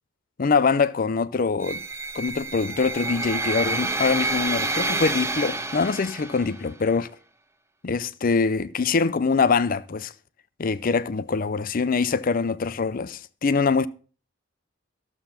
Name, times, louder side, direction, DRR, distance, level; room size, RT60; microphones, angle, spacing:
voice 1, 0.4-1.8 2.1-7.1 7.8-10.1 10.6-13.9, left 4 dB, 45° left, 0.5 m, -24 dB
sound 1, 1.6-6.7, right 3 dB, 15° right, 0.8 m, -28 dB
13.5 x 7.1 x 5.6 m
head